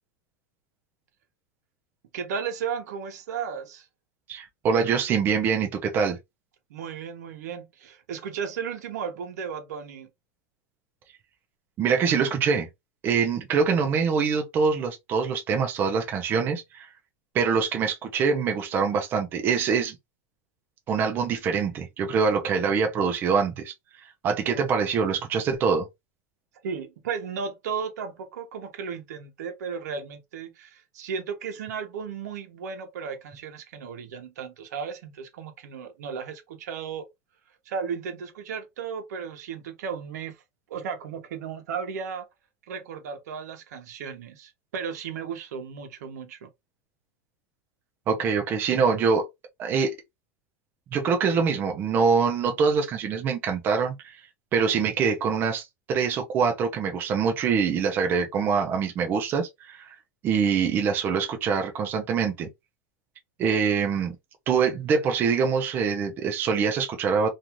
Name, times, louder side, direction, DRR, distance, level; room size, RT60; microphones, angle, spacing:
voice 1, 2.1-3.9 6.7-10.1 24.5-24.6 26.6-37.1 37.7-40.4 40.7-42.2 42.7-46.5, right 6 dB, 85° right, 0.9 m, -35 dB
voice 2, 4.3-6.2 11.8-12.7 13.0-16.9 17.3-20.0 20.9-23.7 24.0-25.9 48.1-49.3 49.6-49.9 50.9-54.2 54.5-59.9 60.2-62.5 63.4-64.2 64.5-67.3, right 6 dB, 25° right, 0.5 m, -24 dB
2.6 x 2.4 x 3.0 m
supercardioid pair, 165°, 9 cm